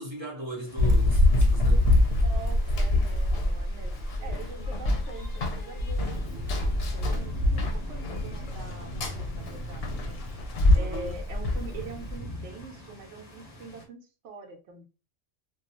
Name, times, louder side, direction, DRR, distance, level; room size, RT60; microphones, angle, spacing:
voice 1, 0.0-1.9 10.7-11.1, right 1 dB, 30° right, 0.6 m, -38 dB
sound 1, 0.6-13.8, right 1 dB, 35° left, 0.7 m, -46 dB
Run, 0.8-12.2, left 1 dB, 65° left, 0.8 m, -25 dB
voice 2, 2.2-3.9 4.2-14.8, right 3 dB, 75° right, 0.9 m, -44 dB
Motorcycle / Engine starting, 4.9-12.2, left 2 dB, 85° left, 0.9 m, -45 dB
2.3 x 2.3 x 2.8 m
omnidirectional pair, 1.2 m